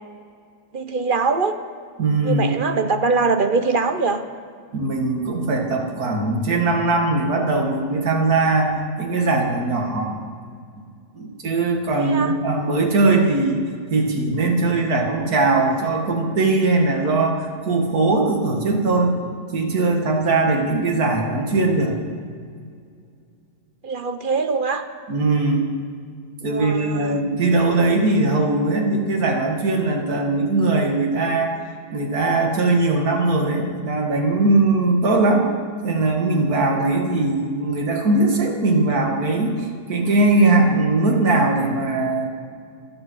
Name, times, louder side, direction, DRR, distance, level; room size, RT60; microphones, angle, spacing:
voice 1, 0.7-1.5 2.2-4.2 12.0-12.4 23.8-24.8 26.5-27.2, right 4 dB, 45° right, 8 dB, 0.8 m, -22 dB
voice 2, 2.0-2.6 4.7-8.7 9.0-10.1 11.1-13.6 13.9-19.2 19.5-22.0 25.1-25.7 26.4-31.5 31.9-35.5 35.8-42.3, right 2 dB, 90° right, 2 dB, 2.3 m, -20 dB
26.0 x 8.8 x 6.2 m, 2.2 s
omnidirectional pair, 1.5 m